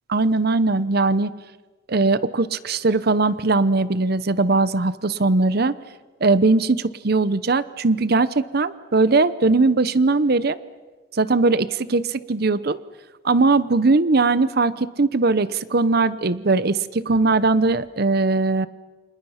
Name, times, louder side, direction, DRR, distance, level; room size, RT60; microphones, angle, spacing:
voice 1, 0.1-1.3 1.9-5.7 6.2-10.6 11.1-12.8 13.2-18.7, right 3 dB, 55° right, 16 dB, 0.8 m, -20 dB
29.0 x 26.5 x 5.8 m, 1.3 s
head